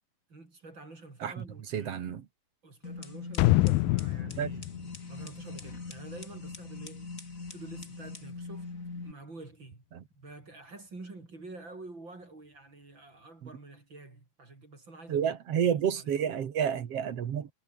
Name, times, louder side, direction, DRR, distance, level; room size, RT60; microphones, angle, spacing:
voice 1, 0.3-2.0 2.6-4.6 5.1-8.7 9.0-9.8 10.1-15.3 15.9-16.3, right 2 dB, 30° right, 5.4 m, -48 dB
voice 2, 1.7-2.2 4.4-4.5 9.9-10.0 15.1-17.5, right 8 dB, 50° right, 2.1 m, -30 dB
sound 1, 2.8-9.1, left 3 dB, 25° left, 3.0 m, -42 dB
sound 2, 3.4-6.2 6.5-6.6, left 19 dB, 85° left, 2.5 m, -27 dB
omnidirectional pair, 4.3 m